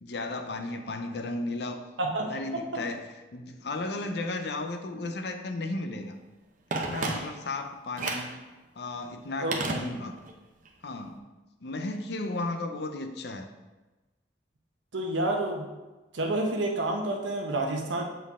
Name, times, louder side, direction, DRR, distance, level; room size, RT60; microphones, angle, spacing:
voice 1, 0.0-1.8 2.2-6.1 6.7-8.3 8.8-10.2 10.8-11.3 11.6-13.5, left 2 dB, 60° left, 6 dB, 0.6 m, -34 dB
voice 2, 2.0-2.6 4.0-4.1 9.4-9.9 14.9-15.7 16.1-18.0, right 2 dB, 85° right, 1 dB, 1.0 m, -29 dB
Telephone, 6.7-7.6 8.0-8.4 9.5-10.4 10.7-10.8, right 3 dB, 45° right, 0.7 m, -32 dB
7.3 x 4.4 x 3.6 m, 1.1 s
head